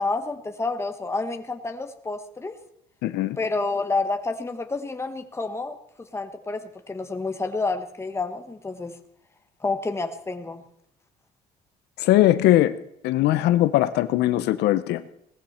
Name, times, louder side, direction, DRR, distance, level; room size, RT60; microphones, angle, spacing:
voice 1, 0.0-2.6 3.4-5.8 6.1-8.9 9.6-10.6, left 3 dB, 15° left, 6 dB, 1.4 m, -29 dB
voice 2, 3.0-3.4 12.0-12.7 13.0-15.1, left 14 dB, 80° left, 13 dB, 0.8 m, -20 dB
19.0 x 14.0 x 4.4 m, 0.79 s
cardioid pair, 110°, 17 cm